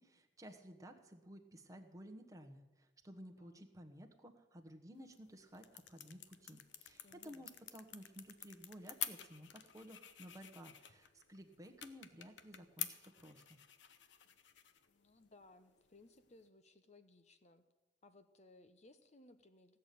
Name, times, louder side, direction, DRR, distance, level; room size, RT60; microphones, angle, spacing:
voice 1, 0.0-13.6, equal, 20° right, 4 dB, 1.2 m, -55 dB
sound 1, 4.9-16.5, left 10 dB, 85° left, 0.9 m, -50 dB
voice 2, 7.0-7.5 14.9-17.6 18.0-19.8, left 2 dB, 40° left, 10 dB, 0.9 m, -63 dB
15.5 x 6.8 x 9.3 m, 1.1 s
head